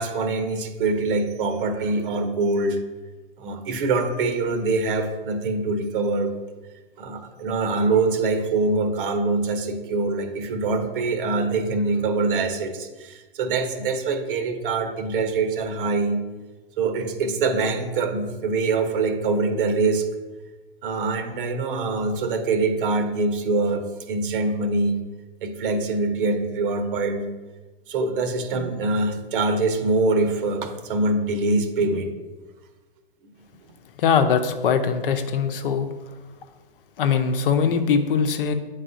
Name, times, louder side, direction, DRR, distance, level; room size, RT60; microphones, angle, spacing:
voice 1, 0.0-2.8 3.4-6.3 7.0-16.2 16.8-20.1 20.8-25.0 25.4-27.3 27.9-32.1, right 3 dB, 65° right, 7 dB, 1.0 m, -24 dB
voice 2, 34.0-35.9 37.0-38.5, left 6 dB, 65° left, 7 dB, 0.8 m, -21 dB
8.8 x 4.0 x 2.6 m, 1.2 s
hypercardioid pair, 115°, 30 cm